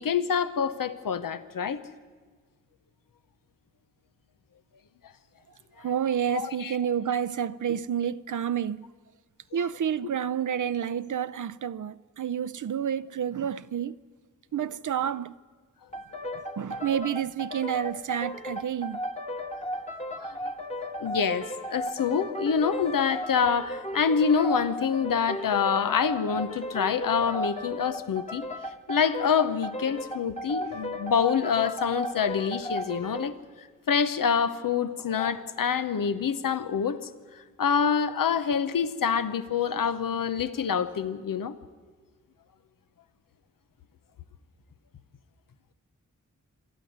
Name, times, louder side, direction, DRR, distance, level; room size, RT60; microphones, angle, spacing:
voice 1, 0.0-1.8 6.3-6.8 20.2-20.4 21.0-28.5 28.9-33.4 33.9-37.1 37.6-41.6, left 6 dB, 90° left, 0.9 m, -26 dB
voice 2, 5.8-8.9 9.5-14.0 14.5-15.3 16.6-19.0, right 9 dB, 70° right, 0.6 m, -29 dB
sound 1, 15.9-33.4, equal, 20° left, 1.3 m, -35 dB
27.0 x 11.0 x 9.3 m
cardioid pair, 60°, 32 cm